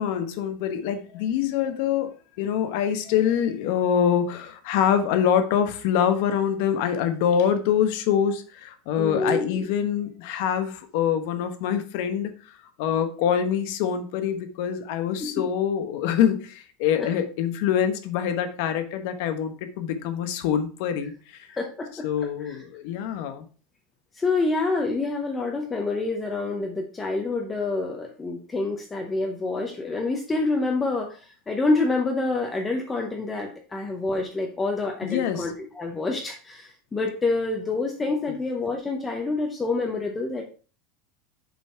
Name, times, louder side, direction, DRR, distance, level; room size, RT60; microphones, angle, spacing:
voice 1, 0.0-2.1 2.4-21.5 22.0-23.5 35.0-35.5 38.3-38.4, left 8 dB, 55° left, 9 dB, 1.1 m, -25 dB
voice 2, 9.0-9.7 15.2-15.3 17.0-17.1 21.5-22.1 22.4-22.6 24.1-40.4, left 3 dB, 10° left, 2 dB, 0.8 m, -27 dB
7.1 x 4.1 x 4.4 m, 0.38 s
supercardioid pair, 160°, 0 cm